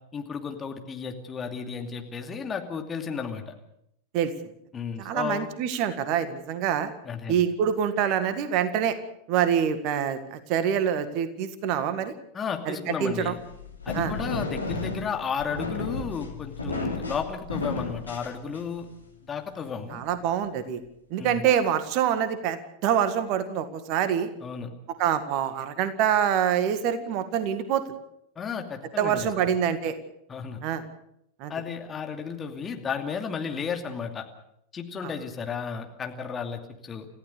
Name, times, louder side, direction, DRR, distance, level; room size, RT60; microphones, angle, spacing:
voice 1, 0.1-3.5 4.7-5.5 7.0-7.4 12.3-13.4 13.8-18.9 19.2-20.0 21.2-21.5 24.4-24.7 28.4-29.5 30.3-30.6 31.5-34.3 34.7-37.1, left 6 dB, 20° left, 4 dB, 2.6 m, -33 dB
voice 2, 5.0-6.9 7.3-9.0 9.3-12.1 12.7-13.3 13.9-14.1 19.9-20.8 21.1-24.3 25.0-27.8 29.0-29.9 30.6-30.8 31.4-31.5, right 9 dB, 45° right, 11 dB, 1.9 m, -25 dB
sound 1, 13.2-18.9, left 3 dB, 80° left, 3.0 m, -33 dB
29.5 x 15.0 x 6.8 m, 0.78 s
figure-of-eight pair, 90°, 0 cm